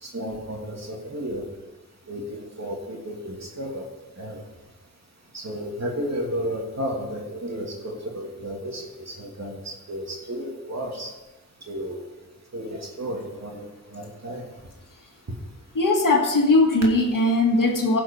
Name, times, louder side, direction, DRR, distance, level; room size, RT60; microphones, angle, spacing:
voice 1, 0.0-1.4 2.1-3.8 4.2-4.4 5.3-11.1 11.7-12.1 12.5-14.5, equal, 55° right, -1 dB, 2.8 m, -33 dB
voice 2, 15.8-18.0, left 2 dB, 75° left, 1 dB, 1.9 m, -19 dB
16.0 x 6.2 x 5.4 m, 1.1 s
wide cardioid pair, 60°, 32 cm